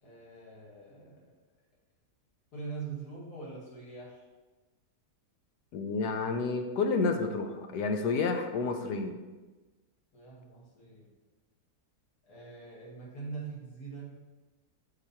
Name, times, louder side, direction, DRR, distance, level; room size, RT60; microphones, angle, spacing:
voice 1, 0.0-1.3 2.5-4.2 10.1-11.1 12.3-14.2, right 4 dB, 70° left, -6 dB, 2.5 m, -43 dB
voice 2, 5.7-9.1, left 4 dB, 90° left, 5 dB, 1.3 m, -30 dB
6.0 x 5.0 x 4.2 m, 1.2 s
omnidirectional pair, 1.7 m